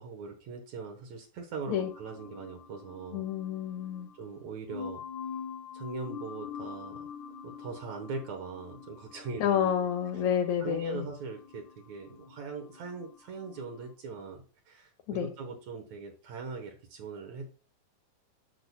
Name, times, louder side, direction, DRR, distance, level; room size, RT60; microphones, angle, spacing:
voice 1, 0.0-3.3 4.2-5.0 5.7-7.1 7.4-9.7 10.6-17.5, right 4 dB, 70° right, 3 dB, 2.3 m, -41 dB
sound 1, 1.6-13.8, left 7 dB, 60° left, 1.3 m, -45 dB
voice 2, 3.1-4.1 9.4-11.1 15.1-15.3, left 9 dB, 75° left, 3 dB, 2.0 m, -29 dB
10.5 x 6.8 x 2.2 m, 0.38 s
omnidirectional pair, 3.4 m